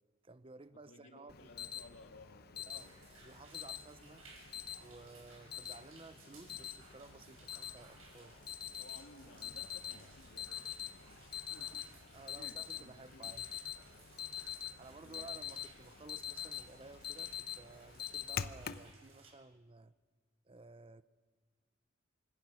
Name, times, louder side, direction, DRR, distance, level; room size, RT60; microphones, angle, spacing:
voice 1, 0.2-1.6 2.7-2.9 3.2-8.4 12.1-13.5 14.8-19.9 20.4-21.0, right 3 dB, 25° right, 0.7 m, -55 dB
voice 2, 0.9-3.0 8.7-11.9 12.3-13.3 15.0-15.3, left 2 dB, 75° left, 2.8 m, -58 dB
Alarm, 1.3-18.9, left 9 dB, 50° left, 0.8 m, -45 dB
sound 1, 2.7-19.3, right 3 dB, 90° right, 7.1 m, -61 dB
26.0 x 24.0 x 6.4 m
head